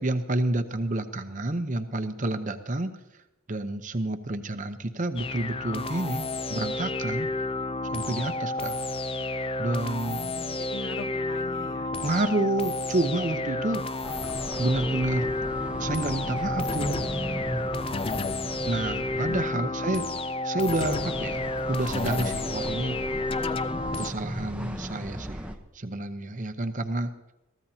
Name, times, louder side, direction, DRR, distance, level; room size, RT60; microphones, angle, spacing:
voice 1, 0.0-3.0 3.5-7.3 7.9-8.8 9.6-10.3 12.0-13.9 14.6-15.3 15.8-17.0 18.7-20.1 20.4-21.4 21.7-23.0 24.0-25.5 25.7-27.1, right 2 dB, 35° right, 9 dB, 0.8 m, -29 dB
sound 1, 5.2-24.1, left 2 dB, 25° left, 0.4 m, -31 dB
voice 2, 10.0-11.9 19.3-19.7, left 2 dB, 55° left, 6 dB, 1.1 m, -41 dB
sound 2, 14.0-19.5 20.9-25.6, equal, 5° right, 0.9 m, -36 dB
22.5 x 14.5 x 2.8 m, 0.94 s
head